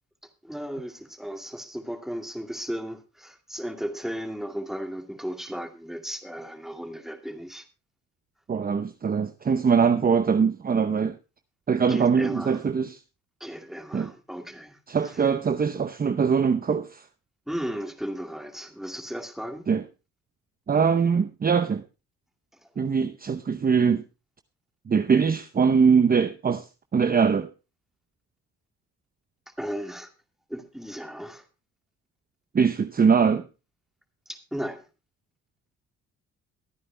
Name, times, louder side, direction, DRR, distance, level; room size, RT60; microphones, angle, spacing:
voice 1, 0.4-7.6 11.9-12.6 13.4-14.8 17.5-19.7 29.6-30.1 30.5-31.4 34.3-34.8, equal, ahead, 2.4 m, -35 dB
voice 2, 8.5-11.2 11.7-13.0 13.9-14.1 14.9-17.0 19.7-19.8 20.7-21.8 22.8-24.0 24.9-26.7 26.9-27.5 32.5-33.4, right 6 dB, 30° right, 0.8 m, -22 dB
23.0 x 9.4 x 2.2 m
cardioid pair, 90°, 30 cm